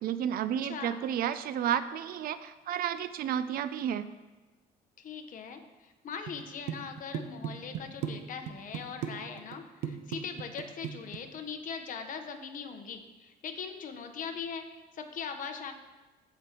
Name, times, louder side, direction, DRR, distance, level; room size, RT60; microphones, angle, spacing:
voice 1, 0.0-4.1, right 9 dB, 60° right, 13 dB, 0.4 m, -31 dB
voice 2, 0.6-1.0 5.0-15.7, left 6 dB, 50° left, 6 dB, 1.0 m, -40 dB
sound 1, 6.3-6.4 6.7-8.1 8.5-9.1 9.4-9.6 9.8-11.2, right 9 dB, 90° right, 0.7 m, -35 dB
15.0 x 5.2 x 2.9 m, 1.2 s
cardioid pair, 110°, 17 cm